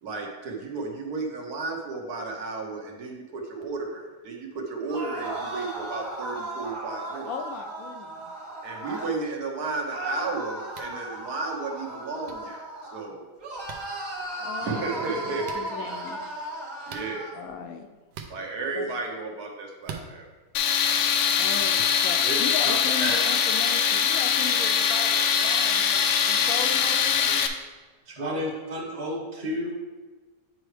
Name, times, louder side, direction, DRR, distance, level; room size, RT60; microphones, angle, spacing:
voice 1, 0.0-7.3 8.6-13.2 14.6-15.9 16.9-17.2 18.3-20.3 28.2-28.4, right 3 dB, 70° right, 1 dB, 1.5 m, -33 dB
sound 1, 4.8-9.2 9.9-13.1 13.4-17.4, right 1 dB, 50° right, 1.8 m, -36 dB
voice 2, 7.3-8.3 14.4-16.2 17.3-17.9 18.7-18.9 21.4-27.6, left 6 dB, 70° left, 6 dB, 0.9 m, -37 dB
sound 2, 10.7-10.9 12.2-12.3 13.7-13.8 15.4-15.6 16.9-17.1 18.1-18.3 19.8-20.1, right 7 dB, 90° right, 1.3 m, -40 dB
Tools, 20.5-27.5, left 7 dB, 85° left, 1.2 m, -23 dB
voice 3, 28.1-29.7, equal, 30° right, -5 dB, 1.0 m, -31 dB
8.9 x 4.5 x 3.2 m, 1.3 s
omnidirectional pair, 1.7 m